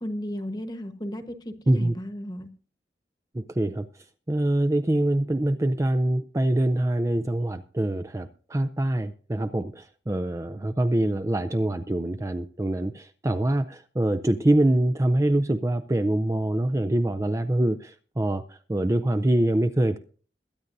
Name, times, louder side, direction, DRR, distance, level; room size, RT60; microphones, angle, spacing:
voice 1, 0.0-2.5, equal, 25° left, 1.1 m, -34 dB
voice 2, 3.3-3.9 4.3-20.0, right 1 dB, 15° right, 0.4 m, -24 dB
22.0 x 9.7 x 2.6 m
head